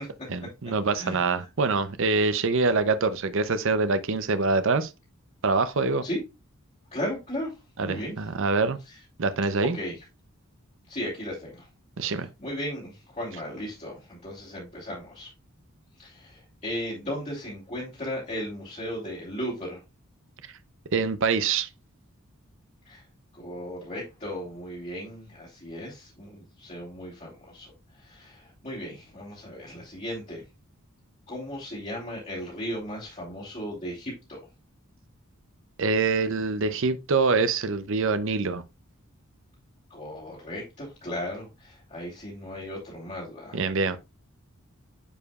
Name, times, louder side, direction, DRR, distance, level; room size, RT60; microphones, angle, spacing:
voice 1, 0.3-4.9 5.4-6.0 7.8-8.8 9.2-9.8 12.0-12.3 20.9-21.7 35.8-38.6 43.5-44.0, right 4 dB, 60° right, 0.6 m, -25 dB
voice 2, 6.9-7.5 7.8-8.1 8.9-9.0 9.7-10.0 10.9-11.7 12.4-15.3 16.0-19.8 22.8-23.0 23.3-30.4 31.3-34.4 39.9-43.6, equal, 30° left, 3.0 m, -36 dB
9.8 x 5.0 x 2.4 m
head